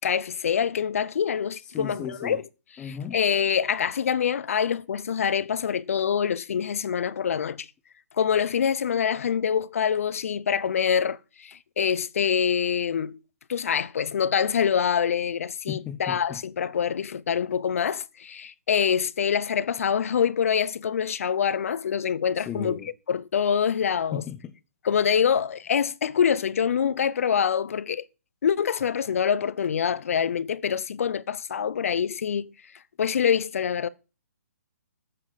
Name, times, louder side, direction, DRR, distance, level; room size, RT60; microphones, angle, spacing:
voice 1, 0.0-2.4 2.8-7.7 8.2-13.2 13.5-22.8 23.1-24.2 24.8-28.0 28.4-32.5 33.0-33.9, left 7 dB, 60° left, 0.7 m, -25 dB
voice 2, 1.6-2.4 2.8-3.2 15.7-16.4 22.4-22.9 24.1-24.5, left 8 dB, 10° left, 0.6 m, -35 dB
13.5 x 7.6 x 4.0 m
hypercardioid pair, 160°, 9 cm